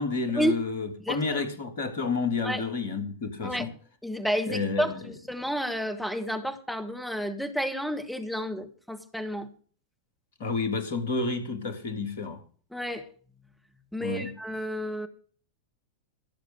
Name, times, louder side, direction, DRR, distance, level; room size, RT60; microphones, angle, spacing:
voice 1, 0.0-3.7 4.5-4.9 10.4-12.4 14.0-14.3, left 4 dB, 55° left, 3.3 m, -30 dB
voice 2, 1.0-1.4 2.4-2.6 3.4-3.7 4.0-9.5 12.7-13.1 13.9-15.1, equal, ahead, 1.8 m, -31 dB
16.5 x 7.2 x 6.7 m
figure-of-eight pair, 90°, 0 cm